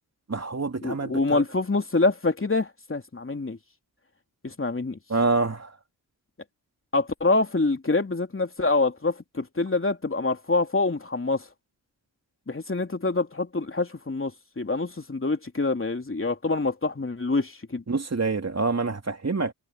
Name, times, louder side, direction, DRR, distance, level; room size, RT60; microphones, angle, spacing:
voice 1, 0.3-1.4 5.1-5.7 17.9-19.5, right 3 dB, 35° right, 3.2 m, -26 dB
voice 2, 0.8-3.6 4.4-5.0 6.9-11.4 12.5-17.8, left 3 dB, 30° left, 3.2 m, -26 dB
supercardioid pair, 45°, 43 cm